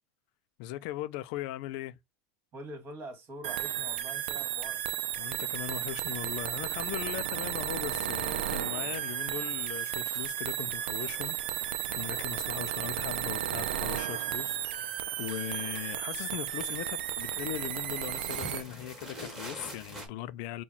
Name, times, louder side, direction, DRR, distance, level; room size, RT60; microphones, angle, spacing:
voice 1, 0.6-2.0 5.2-20.6, left 15 dB, 60° left, 0.4 m, -39 dB
voice 2, 2.5-4.8, right 1 dB, 40° right, 2.1 m, -44 dB
sound 1, 3.4-18.6, right 12 dB, 80° right, 0.5 m, -34 dB
sound 2, 8.8-9.2 9.4-10.4 10.8-13.0 13.3-13.8 14.0-20.1, right 1 dB, 10° right, 2.2 m, -48 dB
5.5 x 2.3 x 2.9 m
supercardioid pair, 110°, 6 cm